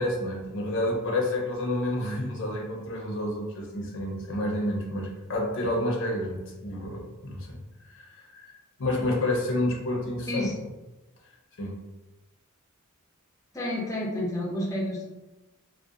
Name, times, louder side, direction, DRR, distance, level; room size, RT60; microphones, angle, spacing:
voice 1, 0.0-7.6 7.9-10.5 11.6-11.8, left 1 dB, 60° left, -1 dB, 0.5 m, -29 dB
voice 2, 13.5-15.0, left 1 dB, 15° left, -4 dB, 0.6 m, -30 dB
2.7 x 2.0 x 2.3 m, 1.0 s
head